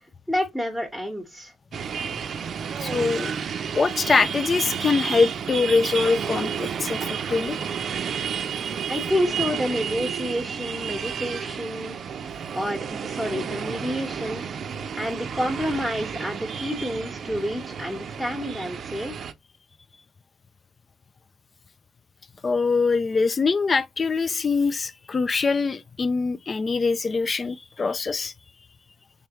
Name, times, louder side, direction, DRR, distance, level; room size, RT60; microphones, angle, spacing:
voice 1, 0.3-1.5 8.9-12.0 12.5-14.4 14.9-19.1, equal, 5° left, 1.0 m, -29 dB
sound 1, 1.7-19.3, right 7 dB, 55° right, 0.5 m, -31 dB
voice 2, 2.8-3.3 3.7-7.0 7.3-7.6 22.4-28.3, left 4 dB, 35° left, 0.3 m, -23 dB
3.4 x 3.4 x 3.0 m
cardioid pair, 90°, 0 cm